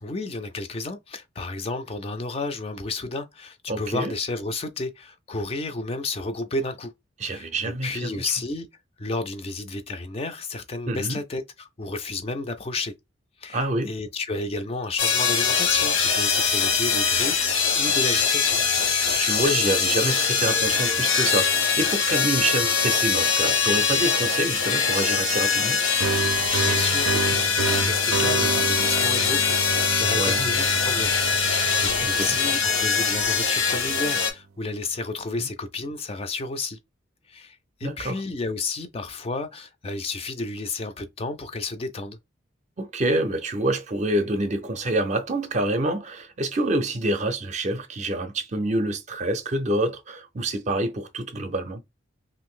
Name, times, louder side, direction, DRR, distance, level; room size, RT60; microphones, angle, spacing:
voice 1, 0.0-6.9 7.2-7.5 7.8-8.7 9.0-12.9 13.4-18.6 26.6-36.8 37.3-42.2, left 3 dB, 30° left, 0.3 m, -32 dB
voice 2, 3.7-4.1 7.2-8.3 10.9-11.2 13.5-13.9 19.1-25.8 30.1-30.5 32.0-32.4 35.4-35.5 37.8-38.2 42.8-51.8, right 1 dB, 35° right, 0.5 m, -27 dB
sound 1, 15.0-34.3, left 5 dB, 80° left, 1.0 m, -23 dB
sound 2, 26.0-33.5, right 5 dB, 90° right, 0.4 m, -30 dB
2.5 x 2.5 x 3.6 m
head